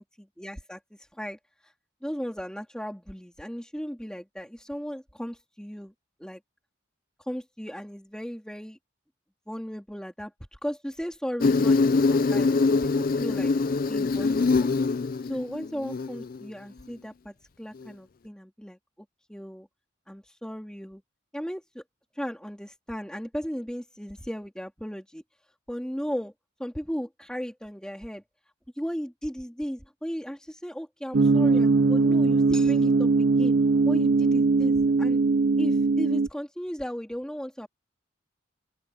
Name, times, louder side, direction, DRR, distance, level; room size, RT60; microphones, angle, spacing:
voice 1, 0.0-1.7 2.0-5.9 6.2-6.4 7.2-8.8 9.5-14.7 15.2-18.8 19.3-19.7 20.1-21.0 21.3-21.8 22.1-25.2 25.7-26.3 26.6-28.2 28.7-33.6 33.8-35.2 35.6-37.7, equal, 5° left, 2.7 m, -36 dB
Insect, 11.4-16.4, left 3 dB, 45° left, 0.4 m, -24 dB
sound 1, 31.1-36.3, right 3 dB, 60° right, 0.7 m, -21 dB
open air
head